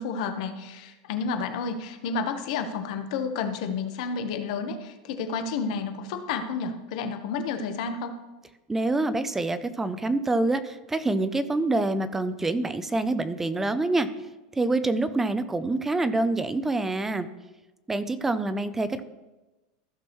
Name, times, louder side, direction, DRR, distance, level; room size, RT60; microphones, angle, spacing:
voice 1, 0.0-8.2, left 5 dB, 60° left, 7 dB, 1.1 m, -31 dB
voice 2, 8.7-14.1 14.6-17.3 17.9-19.1, right 2 dB, 10° right, 12 dB, 0.4 m, -26 dB
14.5 x 6.1 x 3.1 m, 1.1 s
supercardioid pair, 155°, 4 cm